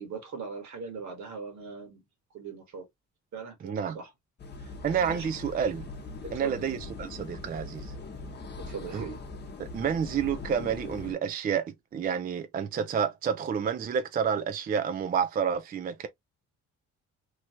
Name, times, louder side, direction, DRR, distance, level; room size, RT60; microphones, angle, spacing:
voice 1, 0.0-2.0 2.3-2.9 3.3-4.1 4.6-5.3 6.2-6.7 8.6-9.2, right 5 dB, 70° right, 1.4 m, -40 dB
voice 2, 3.6-4.0 4.8-5.9 6.3-7.9 8.9-9.0 9.6-16.1, right 7 dB, 30° right, 0.4 m, -29 dB
sound 1, 4.4-11.2, left 3 dB, 35° left, 0.8 m, -41 dB
3.0 x 2.3 x 2.8 m
cardioid pair, 90°, 30 cm